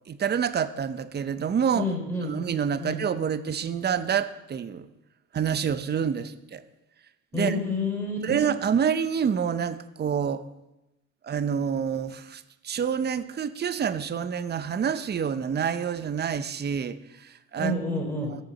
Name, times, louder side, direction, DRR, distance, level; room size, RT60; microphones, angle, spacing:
voice 1, 0.1-1.9 2.2-4.9 5.3-6.6 7.3-7.6 8.2-10.4 11.2-17.7, right 7 dB, 35° right, 13 dB, 0.6 m, -27 dB
voice 2, 1.7-2.4 2.8-3.0 7.3-8.4 17.6-18.3, left 2 dB, 5° left, 0 dB, 4.1 m, -29 dB
8.1 x 6.8 x 7.2 m, 0.95 s
cardioid pair, 90°, 30 cm